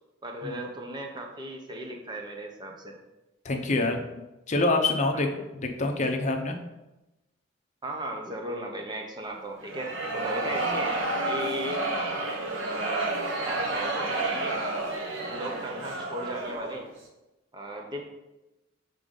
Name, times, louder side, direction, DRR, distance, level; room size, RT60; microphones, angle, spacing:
voice 1, 0.2-2.9 5.1-5.3 7.8-11.8 12.7-13.1 13.4-14.6 15.3-16.8 17.5-18.0, right 1 dB, 25° right, 1 dB, 0.9 m, -36 dB
voice 2, 3.4-4.0 4.5-5.3 5.6-6.6, left 2 dB, 40° left, 3 dB, 0.7 m, -25 dB
sound 1, 9.6-16.8, right 2 dB, 85° right, 1.0 m, -30 dB
6.9 x 3.8 x 3.8 m, 0.99 s
head